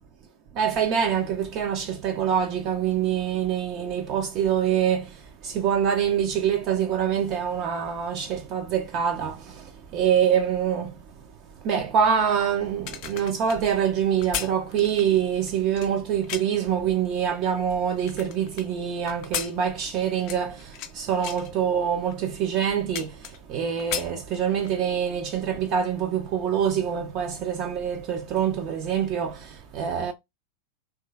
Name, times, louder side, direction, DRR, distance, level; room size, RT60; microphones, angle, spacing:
voice 1, 0.5-11.0 11.6-30.1, right 8 dB, 40° right, 0.3 m, -25 dB
sound 1, 12.7-16.7 17.2-18.7 19.1-20.9 21.2-21.5 22.1-22.2 22.5-23.5 23.8-24.8 25.2-25.3, left 9 dB, 40° left, 0.4 m, -35 dB
3.0 x 2.3 x 2.3 m
figure-of-eight pair, 90°, 0 cm